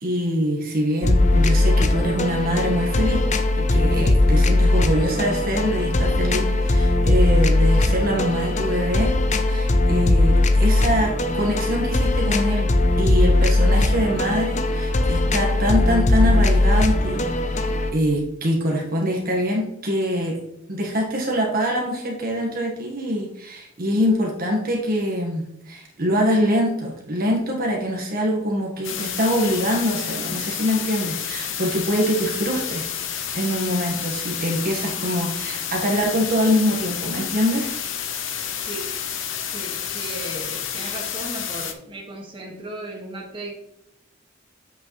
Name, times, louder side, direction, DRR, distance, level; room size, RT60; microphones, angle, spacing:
voice 1, 0.0-3.2 3.6-9.1 9.5-12.7 13.0-20.4 20.7-32.9 33.3-37.7, equal, 50° right, -1 dB, 1.5 m, -24 dB
sound 1, 1.0-17.9, left 2 dB, 40° left, 0.7 m, -19 dB
sound 2, 28.8-41.7, left 8 dB, 85° left, 0.9 m, -30 dB
voice 2, 39.5-43.5, right 1 dB, 25° right, -1 dB, 1.7 m, -36 dB
8.1 x 6.5 x 3.1 m, 0.82 s
head